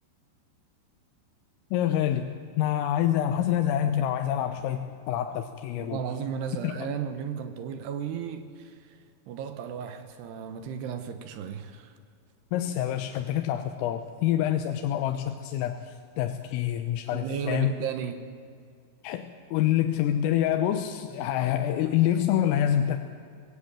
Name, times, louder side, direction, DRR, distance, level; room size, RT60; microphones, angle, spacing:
voice 1, 1.7-2.3 2.6-6.0 6.6-6.9 12.5-17.7 19.0-23.0, left 11 dB, 85° left, 6 dB, 3.5 m, -26 dB
voice 2, 5.8-9.0 9.3-11.9 17.1-18.3, right 7 dB, 75° right, 9 dB, 2.6 m, -34 dB
24.0 x 18.5 x 9.0 m, 2.3 s
omnidirectional pair, 5.9 m